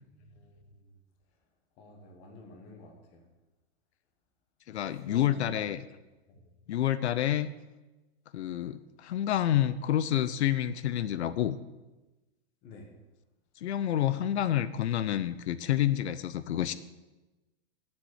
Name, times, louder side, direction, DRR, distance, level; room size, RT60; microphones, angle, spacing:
voice 1, 0.2-1.0 1.8-3.2 4.7-5.7 6.3-6.4 12.6-12.9, left 2 dB, 20° left, 3 dB, 1.1 m, -51 dB
voice 2, 4.7-5.8 6.7-7.5 8.3-11.6 13.6-16.7, left 11 dB, 80° left, 14 dB, 0.7 m, -28 dB
7.6 x 7.2 x 8.0 m, 1.1 s
supercardioid pair, 180°, 33 cm